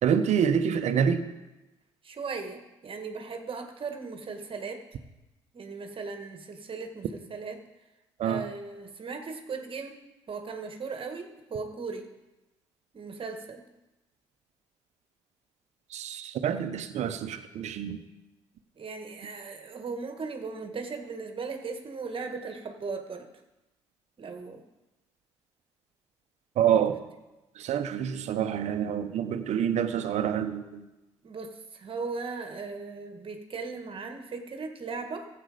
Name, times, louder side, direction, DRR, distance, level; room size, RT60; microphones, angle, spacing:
voice 1, 0.0-1.3 8.2-8.5 15.9-18.0 26.6-27.0 27.6-30.8, right 8 dB, 60° right, 9 dB, 1.1 m, -27 dB
voice 2, 2.0-4.8 5.5-7.6 8.2-10.0 10.3-12.1 12.9-13.6 18.7-23.3 24.2-24.6 26.6-26.7 31.2-35.3, right 4 dB, 45° right, 5 dB, 1.8 m, -37 dB
15.5 x 8.0 x 5.1 m, 1.0 s
hypercardioid pair, 50°, 13 cm